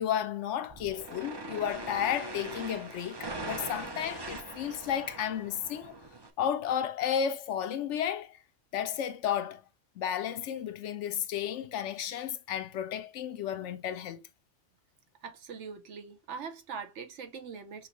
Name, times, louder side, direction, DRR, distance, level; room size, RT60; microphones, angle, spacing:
voice 1, 0.0-6.0 6.4-8.4 8.7-9.6 10.0-14.2, left 9 dB, 80° left, 0.9 m, -33 dB
sound 1, 0.7-6.3, right 2 dB, 25° right, 0.6 m, -41 dB
voice 2, 15.2-17.9, right 6 dB, 70° right, 1.2 m, -42 dB
6.2 x 2.7 x 3.0 m
omnidirectional pair, 1.3 m